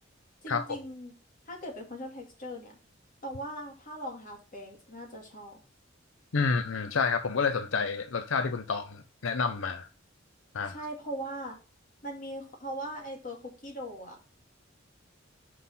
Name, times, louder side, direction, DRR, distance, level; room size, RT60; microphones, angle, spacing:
voice 1, 0.4-1.2 1.5-2.8 3.2-5.6 10.7-11.6 12.0-14.2, right 1 dB, 45° left, 2.5 m, -40 dB
voice 2, 6.3-9.9 10.5-10.8, left 5 dB, 85° left, 0.6 m, -29 dB
6.2 x 5.6 x 5.5 m
head